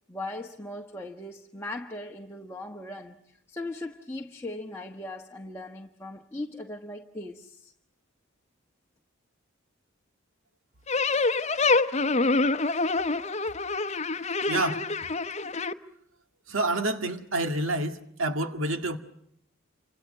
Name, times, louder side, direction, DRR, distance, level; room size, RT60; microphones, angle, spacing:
voice 1, 0.1-3.2 3.5-7.7, left 2 dB, 10° left, 1.2 m, -38 dB
sound 1, 10.9-15.7, left 3 dB, 30° left, 1.0 m, -26 dB
voice 2, 14.5-14.9 16.5-19.0, right 2 dB, 70° right, 1.9 m, -28 dB
29.5 x 26.5 x 6.6 m
head